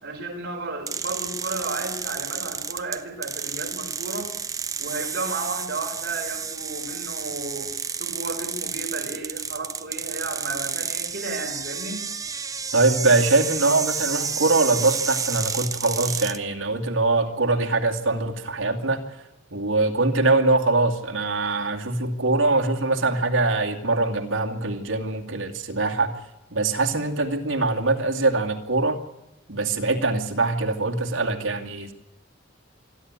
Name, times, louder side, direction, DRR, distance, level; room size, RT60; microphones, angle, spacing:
voice 1, 0.0-4.3 4.8-7.7 8.0-12.1, right 3 dB, 50° right, 2 dB, 4.7 m, -33 dB
sound 1, 0.9-16.4, right 6 dB, 15° right, 0.7 m, -31 dB
voice 2, 12.7-19.0 19.5-26.1 26.5-29.0 29.5-31.9, right 3 dB, 75° right, 2 dB, 2.5 m, -23 dB
26.5 x 11.5 x 9.7 m, 0.92 s
head